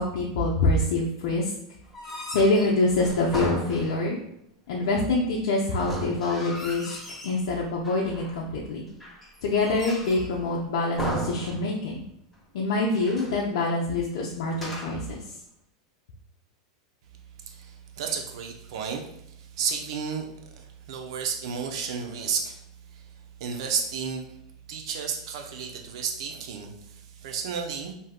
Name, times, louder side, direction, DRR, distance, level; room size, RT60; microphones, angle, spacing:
voice 1, 0.0-1.5 2.3-4.2 4.7-6.9 7.2-8.9 9.4-12.0 12.5-15.2, left 2 dB, 70° left, -3 dB, 0.5 m, -25 dB
sound 1, 1.8-4.3 5.7-7.4 7.8-8.5 9.0-10.4 11.0-12.1 12.3-12.4 12.9-13.4 14.5-15.1, equal, 5° left, 1.0 m, -35 dB
voice 2, 17.4-20.3 20.6-22.6 22.9-23.0 23.4-24.2 24.7-27.9, right 6 dB, 70° right, 4 dB, 0.5 m, -32 dB
3.5 x 2.6 x 2.3 m, 0.78 s
supercardioid pair, 125°, 3 cm